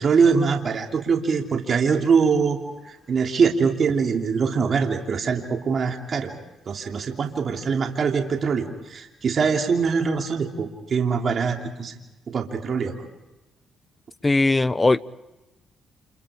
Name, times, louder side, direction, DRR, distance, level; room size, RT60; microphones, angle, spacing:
voice 1, 0.0-2.6 2.9-6.3 6.7-11.9 12.3-13.1, right 5 dB, 50° right, 2 dB, 2.9 m, -23 dB
voice 2, 14.2-15.0, left 2 dB, 20° left, 16 dB, 0.7 m, -19 dB
30.0 x 28.5 x 5.0 m, 1.0 s
cardioid pair, 90°, 0 cm